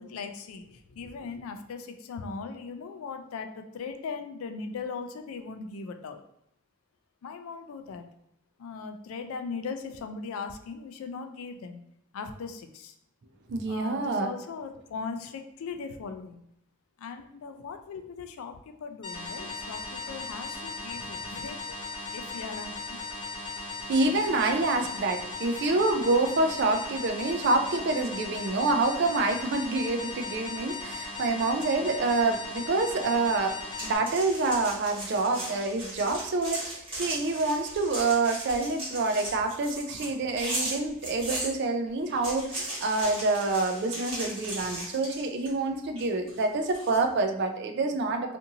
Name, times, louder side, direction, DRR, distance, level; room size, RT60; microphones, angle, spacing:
voice 1, 0.0-6.2 7.2-8.0 8.6-11.8 12.1-12.9 13.7-16.4 17.0-21.7 22.1-23.0, left 5 dB, 70° left, 7 dB, 0.3 m, -39 dB
voice 2, 13.5-14.3 23.9-33.6 33.8-48.4, right 3 dB, 50° right, 6 dB, 0.3 m, -27 dB
sound 1, 19.0-34.0, left 3 dB, 20° left, 0.9 m, -38 dB
sound 2, 33.7-41.5 42.1-45.6 46.0-47.0, right 1 dB, 25° right, 1.1 m, -37 dB
2.6 x 2.5 x 2.7 m, 0.78 s
head